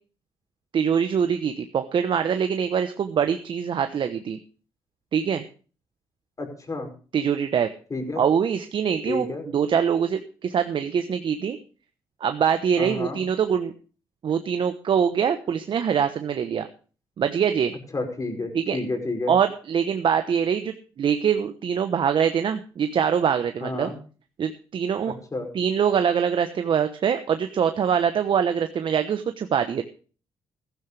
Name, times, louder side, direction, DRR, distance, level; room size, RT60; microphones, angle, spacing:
voice 1, 0.7-4.4 5.1-5.4 7.1-7.7 8.2-11.6 12.2-13.7 14.2-16.7 17.2-17.7 18.5-18.8 19.3-23.9 24.4-25.2 25.5-29.8, right 7 dB, 60° right, 8 dB, 1.0 m, -24 dB
voice 2, 6.4-6.9 7.9-8.2 9.1-9.4 12.8-13.2 17.9-19.3 23.6-24.0 25.3-25.5, left 2 dB, 35° left, 4 dB, 5.5 m, -30 dB
15.0 x 13.0 x 3.4 m, 0.38 s
supercardioid pair, 60°, 10 cm